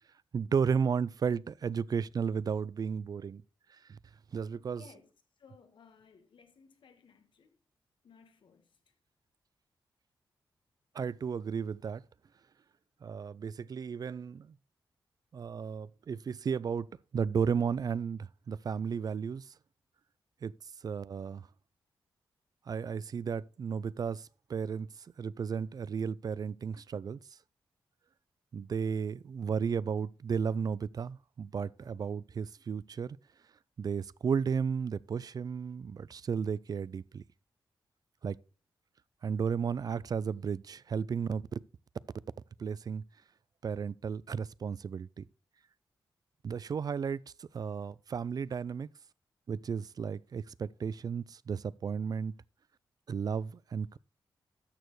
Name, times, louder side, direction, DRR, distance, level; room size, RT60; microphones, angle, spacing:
voice 1, 0.3-3.4 3.9-4.0 4.3-4.8 10.9-12.0 13.0-14.5 15.3-16.9 17.1-19.5 20.4-20.5 20.8-21.4 22.7-24.9 25.2-27.2 28.5-33.2 33.8-37.2 38.2-38.4 39.2-41.4 42.6-43.0 43.6-45.2 46.4-48.9 49.5-52.3 53.1-54.0, right 6 dB, 50° right, 0.4 m, -34 dB
voice 2, 4.7-5.1 5.4-7.6 8.0-9.0, left 5 dB, 75° left, 1.5 m, -59 dB
12.5 x 6.8 x 3.1 m
cardioid pair, 90°, 8 cm